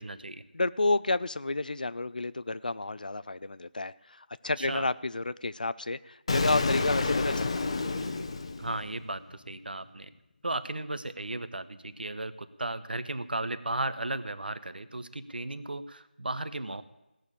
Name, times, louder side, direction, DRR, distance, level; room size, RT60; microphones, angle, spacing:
voice 1, 0.0-0.4 4.6-4.9 8.6-10.1 10.4-16.8, right 2 dB, 65° right, 13 dB, 1.1 m, -35 dB
voice 2, 0.5-7.7, left 2 dB, 55° left, 17 dB, 0.6 m, -30 dB
Explosion, 6.3-9.2, left 3 dB, 35° left, 0.9 m, -29 dB
17.0 x 6.6 x 8.7 m, 0.92 s
figure-of-eight pair, 165°, 5 cm